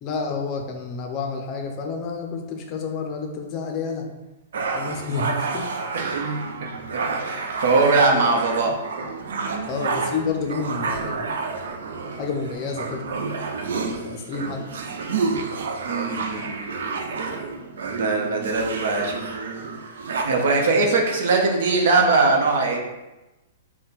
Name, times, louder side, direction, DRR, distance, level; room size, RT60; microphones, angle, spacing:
voice 1, 0.0-4.1 4.7-5.7 7.9-8.0 9.7-11.3 12.1-13.1 14.0-14.6 16.3-16.4 20.8-21.1, left 4 dB, 30° left, 2 dB, 0.6 m, -29 dB
sound 1, 4.5-20.2, right 4 dB, 80° right, 0.5 m, -29 dB
voice 2, 5.9-6.4 7.1-8.8 13.7-14.0 15.8-16.7 18.0-19.2 20.2-22.8, right 3 dB, 60° right, 1 dB, 0.9 m, -21 dB
4.3 x 2.2 x 3.9 m, 1.0 s
hypercardioid pair, 165°, 0 cm